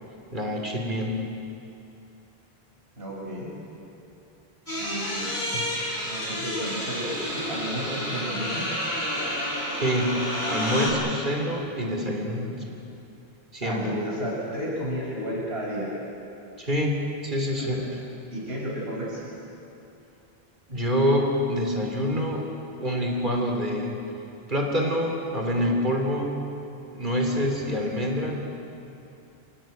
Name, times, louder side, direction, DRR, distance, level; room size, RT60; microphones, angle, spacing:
voice 1, 0.3-1.2 5.5-5.6 9.7-10.2 10.5-12.6 13.5-13.9 16.6-17.0 17.2-17.8 20.7-22.4 22.8-23.9 24.5-26.4 26.9-28.4, equal, 50° right, 1 dB, 3.5 m, -26 dB
voice 2, 3.0-3.5 4.8-5.3 6.0-8.7 13.6-15.9 17.6-17.8 18.3-19.2, equal, 80° right, -5 dB, 5.9 m, -32 dB
sound 1, 4.7-10.9, equal, 55° left, 7.1 m, -30 dB
28.0 x 18.0 x 9.2 m, 2.8 s
omnidirectional pair, 1.0 m